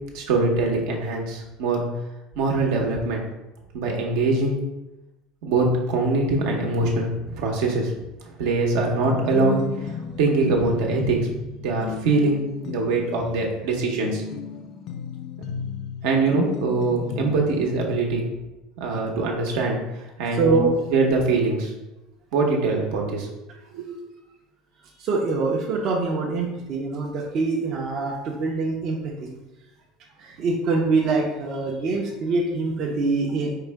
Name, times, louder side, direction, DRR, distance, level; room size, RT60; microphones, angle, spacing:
voice 1, 0.1-1.8 2.4-3.2 3.7-4.6 5.4-7.9 8.4-9.9 10.2-11.2 11.6-14.2 16.0-18.2 18.8-19.8 20.2-20.5 20.9-21.7 22.3-23.3 23.7-24.0, right 3 dB, 75° right, 0 dB, 0.9 m, -23 dB
sound 1, 8.8-17.6, left 6 dB, 50° left, 0.4 m, -35 dB
voice 2, 20.3-20.7 25.0-29.3 30.2-33.5, right 3 dB, 45° right, -2 dB, 0.7 m, -24 dB
4.6 x 2.2 x 4.6 m, 0.99 s
supercardioid pair, 130°, 0 cm